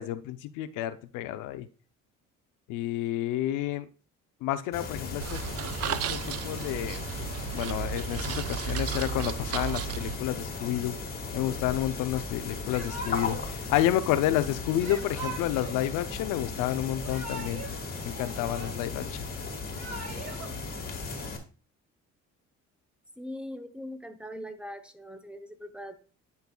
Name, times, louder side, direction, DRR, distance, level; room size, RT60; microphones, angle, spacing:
voice 1, 0.0-1.7 2.7-3.9 4.4-5.4 5.8-7.0 7.5-11.0 11.3-17.8 18.0-19.3, left 13 dB, 85° left, 11 dB, 0.6 m, -30 dB
sound 1, 4.7-21.4, left 4 dB, 30° left, 1.7 m, -37 dB
sound 2, 5.2-10.2, right 9 dB, 55° right, 0.5 m, -34 dB
Yell / Crying sobbing, 12.7-13.5 14.8-15.8 16.8-17.8 18.0-19.0 19.6-20.5, right 3 dB, 70° right, 2.6 m, -41 dB
voice 2, 23.2-26.0, equal, 5° right, 7 dB, 0.8 m, -41 dB
10.5 x 5.4 x 2.3 m, 0.36 s
cardioid pair, 100°, 30 cm